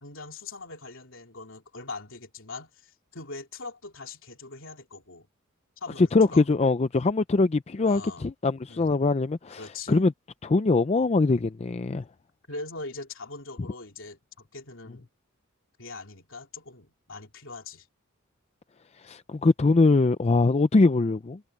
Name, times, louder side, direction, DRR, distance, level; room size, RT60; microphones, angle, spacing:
voice 1, 0.0-5.3 5.8-6.4 7.8-8.3 8.7-9.1 9.6-10.0 12.5-15.1 15.8-17.9, left 3 dB, 65° left, 3.3 m, -41 dB
voice 2, 6.0-10.1 10.4-12.0 19.0-21.4, left 3 dB, 30° left, 0.4 m, -22 dB
head